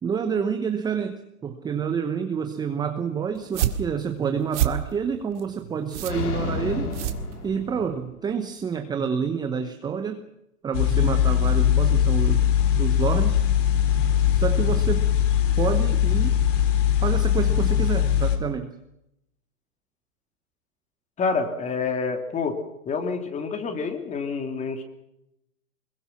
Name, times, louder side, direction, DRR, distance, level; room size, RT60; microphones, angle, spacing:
voice 1, 0.0-7.0 7.4-10.2 10.6-12.5 12.8-13.4 14.3-15.1 15.6-16.4 17.0-18.7, right 6 dB, 10° right, 7 dB, 0.9 m, -28 dB
sound 1, 3.4-7.9, right 12 dB, 50° right, 2.1 m, -29 dB
sound 2, 6.1-8.3, left 4 dB, 85° left, 3.4 m, -31 dB
sound 3, 10.7-18.4, left 10 dB, 55° left, 3.4 m, -21 dB
voice 2, 21.2-22.6 22.9-24.8, left 4 dB, 15° left, 7 dB, 2.7 m, -27 dB
24.5 x 22.0 x 5.9 m, 0.83 s
hypercardioid pair, 135°, 44 cm